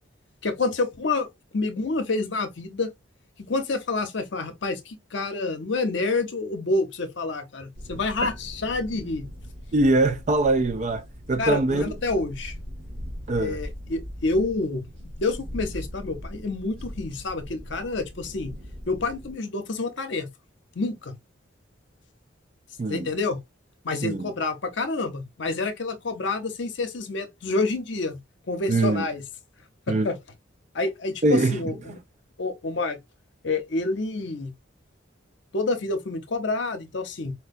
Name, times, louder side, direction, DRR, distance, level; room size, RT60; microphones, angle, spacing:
voice 1, 0.4-1.3 1.5-2.9 3.5-9.3 11.4-12.5 13.4-14.8 15.2-18.5 18.9-20.3 20.7-21.1 22.9-23.4 23.8-28.2 28.5-29.2 29.9-30.1 30.7-32.0 32.4-33.0 33.4-34.5 35.5-37.3, left 3 dB, 65° left, 0.7 m, -28 dB
sound 1, 7.7-19.3, equal, 70° right, 2.1 m, -40 dB
voice 2, 9.7-11.9 13.3-13.6 22.8-23.1 24.0-24.3 28.7-29.0 29.9-30.1 31.2-31.9, right 2 dB, 35° right, 0.4 m, -23 dB
4.5 x 2.2 x 2.5 m
head